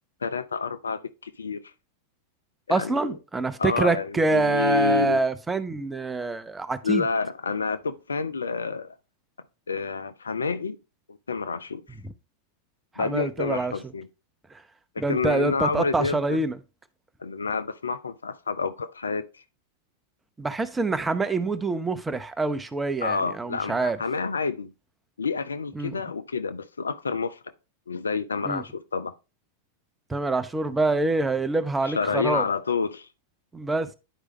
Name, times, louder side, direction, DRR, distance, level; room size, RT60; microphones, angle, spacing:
voice 1, 0.2-1.7 2.7-3.2 3.6-5.2 6.8-8.9 9.7-10.8 11.1-11.8 13.0-14.1 14.9-16.4 17.2-19.3 23.0-24.7 25.2-27.4 27.9-29.1 31.8-33.1, left 5 dB, 75° left, 0.5 m, -29 dB
voice 2, 2.7-7.0 13.0-13.7 15.0-16.5 20.4-24.0 25.7-25.9 28.4-28.6 30.1-32.4 33.5-33.9, right 3 dB, 10° right, 0.8 m, -26 dB
10.0 x 4.8 x 3.1 m
figure-of-eight pair, 90°, 0 cm